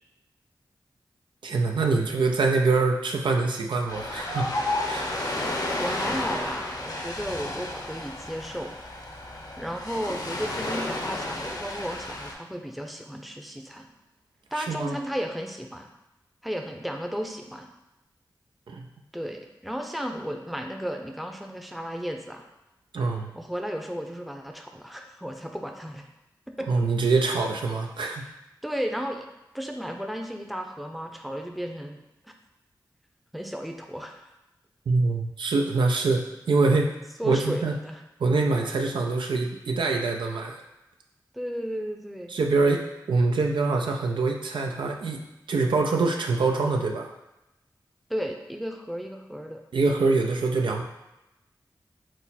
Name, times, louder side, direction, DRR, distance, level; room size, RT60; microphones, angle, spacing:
voice 1, 1.4-4.6 4.8-5.1 14.6-15.0 18.7-18.9 22.9-23.3 26.7-28.2 34.9-36.9 37.2-37.7 38.2-40.6 42.3-45.2 45.5-47.1 49.7-50.8, right 3 dB, 85° right, 2 dB, 0.5 m, -24 dB
Ocean, 3.9-12.3, left 1 dB, 55° left, 0.8 m, -32 dB
voice 2, 5.8-8.8 9.6-13.9 14.5-15.9 16.4-17.7 19.1-22.4 23.3-26.1 26.6-26.7 28.2-28.3 28.6-29.2 29.5-32.3 33.3-34.3 37.2-38.0 41.3-42.3 48.1-49.6, equal, ahead, 3 dB, 0.6 m, -34 dB
6.1 x 2.1 x 4.1 m, 0.94 s
cardioid pair, 50°, 8 cm